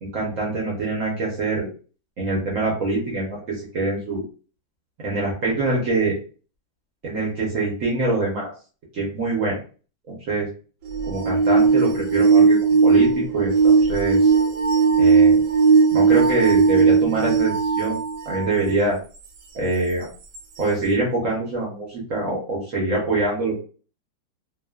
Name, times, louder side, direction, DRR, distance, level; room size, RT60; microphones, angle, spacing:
voice 1, 0.0-1.7 2.2-4.2 5.0-6.2 7.0-8.5 8.9-9.6 10.1-10.5 11.1-14.3 15.0-15.4 15.9-18.0 18.2-19.0 19.5-20.1 20.6-23.6, right 2 dB, 55° right, -3 dB, 1.0 m, -24 dB
sound 1, 10.9-18.5 19.2-19.3 20.3-20.4, right 5 dB, 80° right, 1.2 m, -17 dB
2.7 x 2.3 x 2.2 m, 0.38 s
omnidirectional pair, 1.9 m